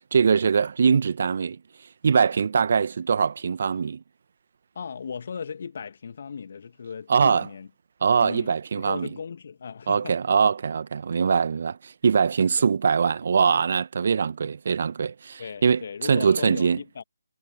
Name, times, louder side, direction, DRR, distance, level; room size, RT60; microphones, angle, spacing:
voice 1, 0.1-1.6 2.0-4.0 7.1-7.4 8.0-9.1 9.9-16.8, right 6 dB, 45° right, 1.6 m, -22 dB
voice 2, 4.7-7.7 8.2-10.2 12.6-12.7 15.4-17.0, left 6 dB, 45° left, 2.4 m, -37 dB
figure-of-eight pair, 150°, 0 cm